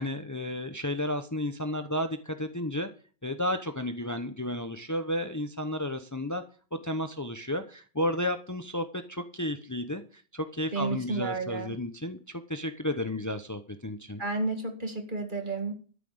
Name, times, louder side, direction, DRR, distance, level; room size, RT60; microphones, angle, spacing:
voice 1, 0.0-2.9 3.2-6.4 6.8-14.2, left 1 dB, 20° left, 8 dB, 0.8 m, -32 dB
voice 2, 10.7-11.8 14.2-15.7, right 3 dB, 50° right, 4 dB, 2.4 m, -31 dB
13.0 x 5.8 x 7.9 m, 0.41 s
omnidirectional pair, 1.0 m